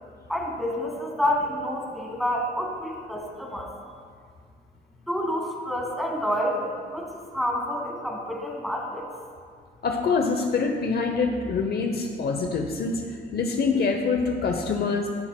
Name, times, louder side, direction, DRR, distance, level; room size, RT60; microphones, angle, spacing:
voice 1, 0.3-3.7 5.1-9.1, equal, ahead, -1 dB, 2.0 m, -28 dB
voice 2, 9.8-15.1, left 4 dB, 55° left, 4 dB, 0.8 m, -25 dB
15.5 x 8.5 x 2.2 m, 2.1 s
cardioid pair, 90°, 20 cm